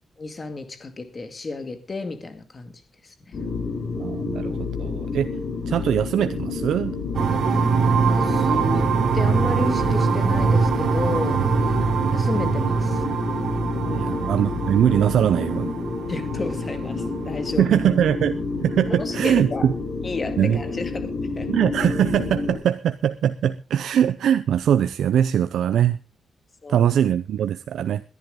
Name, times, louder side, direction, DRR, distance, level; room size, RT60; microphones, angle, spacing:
voice 1, 0.2-2.7 8.1-8.8 9.1-11.4 12.1-13.0 13.8-14.1 16.1-17.7 19.0-19.7 20.0-21.1 21.4-21.5 26.6-26.9, left 3 dB, 30° left, 2.2 m, -31 dB
sound 1, 3.3-22.6, left 4 dB, 65° left, 6.4 m, -29 dB
voice 2, 4.0-5.3 5.7-7.0 11.7-11.8 13.9-15.8 17.6-19.7 20.4-20.6 21.5-26.0 26.7-28.0, right 10 dB, 80° right, 0.6 m, -22 dB
sound 2, 7.1-17.7, right 5 dB, 65° right, 2.1 m, -23 dB
21.5 x 11.0 x 3.8 m
cardioid pair, 130°, 0 cm